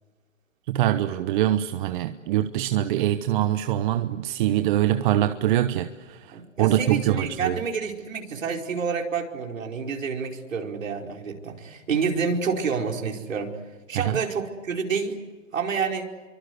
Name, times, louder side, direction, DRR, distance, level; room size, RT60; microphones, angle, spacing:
voice 1, 0.7-7.6 13.9-14.2, right 12 dB, 40° right, 1.1 m, -24 dB
voice 2, 6.3-13.5 13.9-15.2 15.5-16.1, right 5 dB, 85° right, 5.0 m, -28 dB
28.5 x 24.5 x 8.1 m
hypercardioid pair, 140°, 38 cm